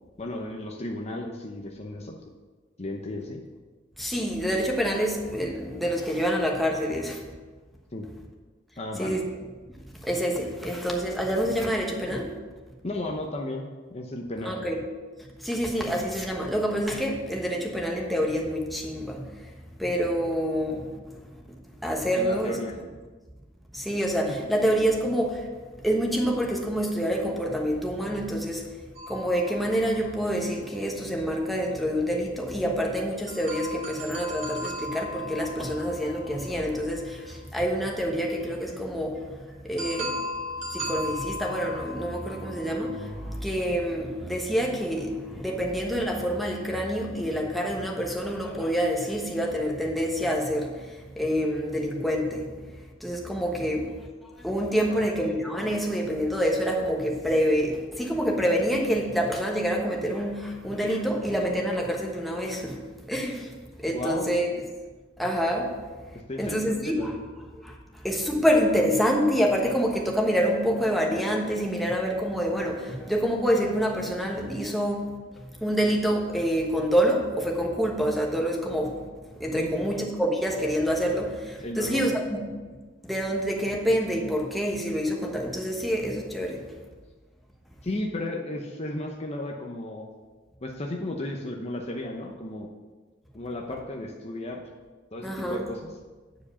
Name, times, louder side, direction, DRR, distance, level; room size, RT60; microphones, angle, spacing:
voice 1, 0.2-2.2 2.8-3.4 7.9-8.0 8.8-9.2 12.8-14.6 22.1-22.7 54.9-55.0 63.9-64.3 66.1-67.2 79.5-79.9 81.6-82.0 87.8-90.1 90.6-92.7 93.3-94.6 95.1-95.9, left 1 dB, 35° left, 1 dB, 0.8 m, -34 dB
voice 2, 4.0-7.2 9.0-9.4 10.0-12.3 14.4-14.8 15.4-19.2 19.8-20.9 21.8-22.6 23.7-25.5 25.8-28.7 29.1-39.2 39.6-40.2 40.7-50.7 51.1-52.5 53.0-54.1 54.4-62.8 63.1-63.5 63.8-64.5 65.2-65.8 66.4-67.2 67.5-67.7 68.0-79.1 79.4-82.6 83.0-86.6 95.2-95.7, equal, ahead, -1 dB, 1.2 m, -27 dB
sound 1, 28.9-30.7 33.3-37.2 39.8-43.2, equal, 40° right, 2.3 m, -37 dB
9.2 x 5.0 x 7.0 m, 1.3 s
head